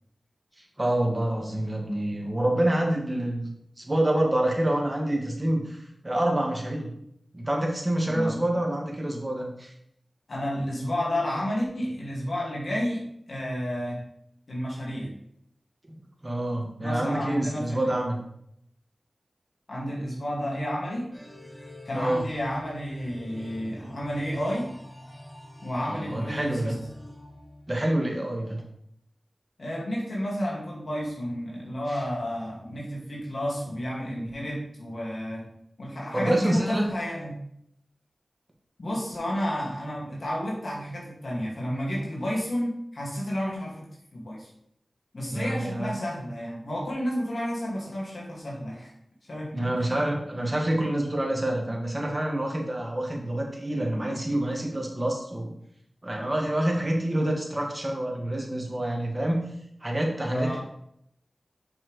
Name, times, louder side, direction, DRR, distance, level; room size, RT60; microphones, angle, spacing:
voice 1, 0.8-3.5 3.8-6.9 7.3-9.7 16.2-18.2 21.9-22.2 25.9-26.7 27.7-28.6 31.9-32.0 36.1-36.8 45.3-45.9 49.5-55.5 56.0-59.4 59.8-60.6, right 1 dB, 30° right, 0 dB, 1.9 m, -27 dB
voice 2, 8.1-8.4 10.3-13.0 13.3-14.0 14.5-15.1 16.8-17.9 19.7-21.1 21.9-24.7 25.6-26.7 29.6-35.4 35.8-37.4 38.8-43.9 44.1-44.5 45.1-48.9 49.3-49.9 60.3-60.6, equal, 75° left, -5 dB, 2.1 m, -31 dB
sound 1, 21.1-28.1, left 1 dB, 15° left, 1.6 m, -45 dB
7.3 x 5.8 x 3.2 m, 0.73 s
wide cardioid pair, 50°, 0 cm